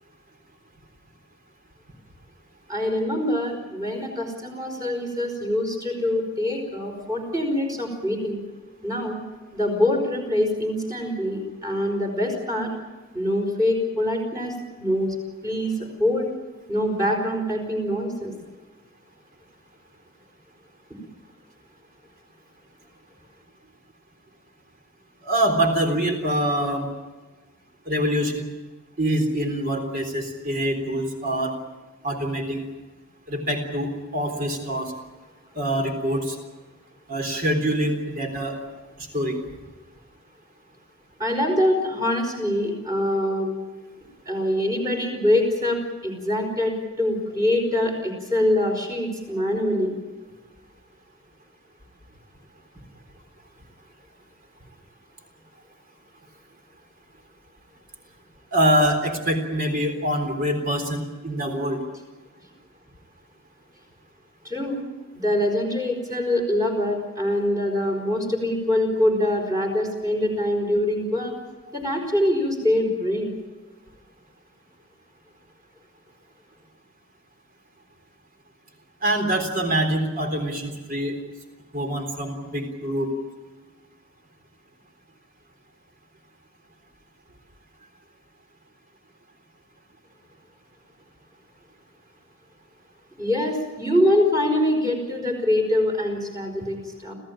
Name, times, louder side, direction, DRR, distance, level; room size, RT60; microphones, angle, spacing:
voice 1, 2.7-8.4 8.8-9.2 9.5-12.7 13.1-15.1 15.4-16.3 16.7-18.3 41.2-43.5 44.3-45.8 46.0-49.9 64.4-64.9 65.1-71.3 71.7-73.3 93.2-97.1, left 1 dB, 15° right, 2 dB, 5.0 m, -24 dB
voice 2, 25.2-26.9 27.9-28.4 29.0-31.6 32.0-32.6 33.3-34.9 35.6-36.4 37.1-38.6 39.0-39.4 58.5-61.8 79.0-81.1 81.7-83.1, right 1 dB, 40° right, 5 dB, 3.8 m, -25 dB
26.5 x 15.5 x 9.0 m, 1.3 s
head